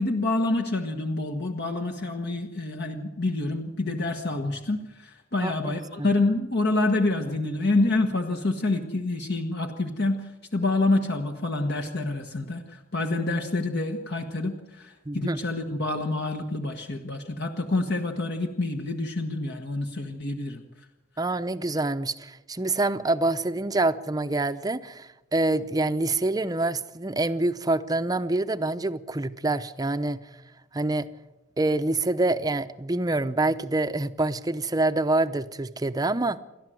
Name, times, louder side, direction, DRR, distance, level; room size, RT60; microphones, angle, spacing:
voice 1, 0.0-10.2 10.5-20.6, left 2 dB, 55° left, 3 dB, 1.4 m, -27 dB
voice 2, 5.4-6.1 15.1-15.4 21.2-30.2 30.7-31.1 31.6-36.4, right 2 dB, 20° right, 11 dB, 0.7 m, -26 dB
29.0 x 12.5 x 7.7 m, 1.0 s
head